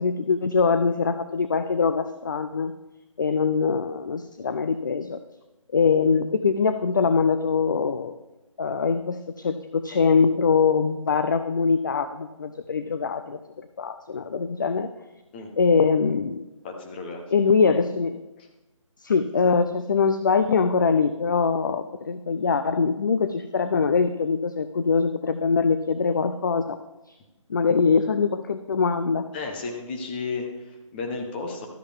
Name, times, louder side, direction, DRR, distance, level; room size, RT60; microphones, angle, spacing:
voice 1, 0.0-2.7 3.2-5.2 5.7-8.1 8.6-13.4 13.8-14.9 15.6-16.4 17.3-18.2 19.0-26.8 27.5-29.3, left 5 dB, 35° left, 10 dB, 0.4 m, -23 dB
voice 2, 16.6-17.2 18.4-18.5 29.3-31.7, left 4 dB, 20° left, 3 dB, 1.0 m, -33 dB
12.5 x 7.9 x 3.5 m, 1.0 s
figure-of-eight pair, 160°, 17 cm